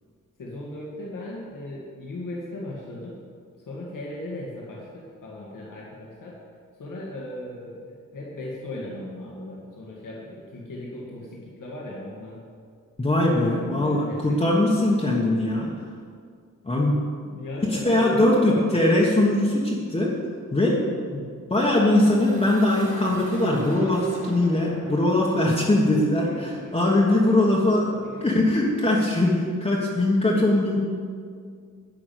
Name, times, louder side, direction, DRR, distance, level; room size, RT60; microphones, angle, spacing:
voice 1, 0.4-3.2 3.7-6.4 6.8-12.4 13.2-14.4 17.3-18.6 26.2-27.4 28.0-28.3, left 1 dB, 75° left, -4 dB, 2.0 m, -37 dB
voice 2, 13.0-15.7 16.6-17.0 17.6-20.1 20.5-26.2 26.7-27.9 28.2-30.8, left 1 dB, 20° left, -5 dB, 1.3 m, -21 dB
sound 1, 21.8-29.6, equal, 40° right, 2.5 m, -44 dB
11.0 x 6.0 x 9.1 m, 2.1 s
wide cardioid pair, 165°, 32 cm